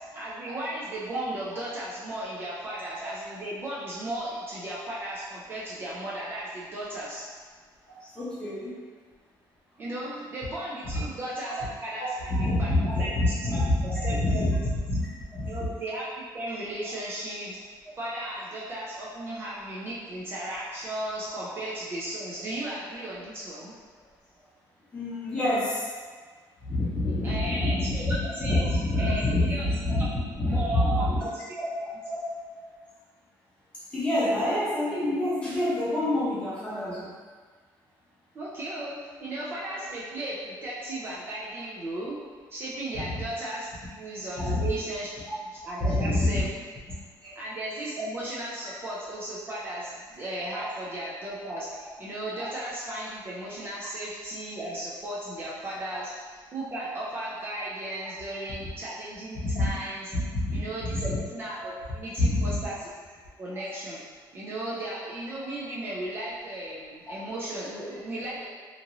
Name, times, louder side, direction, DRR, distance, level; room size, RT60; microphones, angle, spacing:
voice 1, 0.0-7.2 9.8-12.1 12.6-13.6 14.0-14.5 15.5-17.6 18.0-23.7 27.2-28.6 29.0-29.2 29.5-29.7 30.0-30.1 30.5-31.3 38.3-42.1 42.5-45.1 45.6-46.5 47.4-60.1 60.5-62.9 63.4-64.0 64.3-68.5, right 1 dB, 30° right, -7 dB, 0.4 m, -35 dB
voice 2, 8.0-8.8 10.0-10.2 10.8-11.0 11.5-11.6 12.3-14.6 14.9-15.0 15.3-15.5 21.4-21.5 24.9-25.9 26.6-28.1 28.4-30.0 30.3-31.2 32.0-32.2 32.6-32.7 33.9-37.1 42.9-43.2 44.4-44.7 45.8-46.4 47.2-47.3 50.5-50.7 52.3-52.5 55.9-56.0 56.7-56.9 59.3-59.7 60.1-60.6 60.9-61.2 61.6-61.7 62.2-62.6, left 1 dB, 15° left, -9 dB, 0.9 m, -27 dB
2.9 x 2.5 x 2.6 m, 1.5 s
cardioid pair, 165°, 8 cm